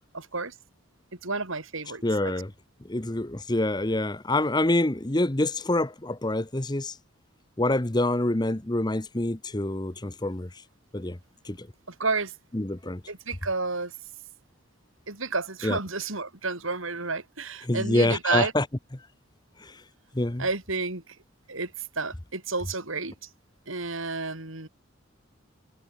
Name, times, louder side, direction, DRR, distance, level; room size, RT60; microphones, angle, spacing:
voice 1, 0.1-0.5 1.2-2.0 11.9-12.3 13.1-14.0 15.1-18.5 20.4-21.2 21.5-23.3 23.7-24.7, right 3 dB, 70° right, 4.1 m, -31 dB
voice 2, 2.0-2.5 2.8-7.0 7.6-10.6 10.9-11.2 11.4-11.7 12.5-13.0 15.6-15.8 17.6-18.7 19.6-19.8 20.1-20.5, left 1 dB, 20° left, 1.0 m, -26 dB
head